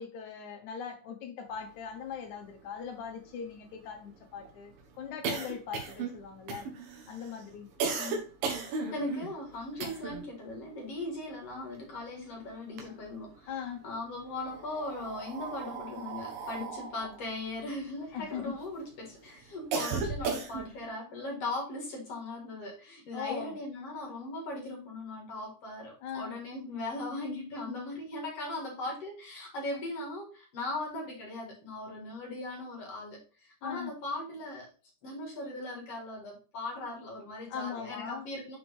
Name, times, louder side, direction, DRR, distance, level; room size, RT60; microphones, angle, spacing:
voice 1, 0.0-6.7 7.1-7.7 12.9-13.0 13.5-13.8 18.1-18.5 23.1-23.6 26.0-26.3 33.6-33.9 37.5-38.3, left 7 dB, 70° left, 1.9 m, -40 dB
sound 1, 2.1-2.2 2.4-2.5 2.9-10.3 10.6-12.2 12.5-13.5 14.2-18.7 19.1-20.9, right 5 dB, 70° right, 2.8 m, -36 dB
voice 2, 8.6-13.6 13.8-34.7 35.0-38.6, left 2 dB, 45° left, 2.4 m, -39 dB
6.9 x 4.8 x 3.5 m
omnidirectional pair, 4.4 m